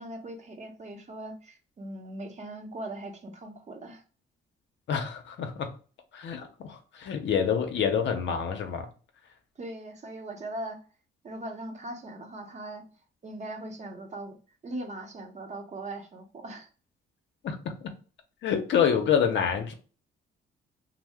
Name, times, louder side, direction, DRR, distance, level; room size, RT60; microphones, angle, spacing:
voice 1, 0.0-4.0 9.6-10.8 11.2-12.9 13.2-14.4 14.6-16.7, right 1 dB, 35° right, 0.7 m, -40 dB
voice 2, 4.9-5.7 6.1-8.9 17.4-17.6 18.4-19.7, left 7 dB, 65° left, 0.6 m, -27 dB
2.7 x 2.0 x 3.3 m
cardioid pair, 90°, 20 cm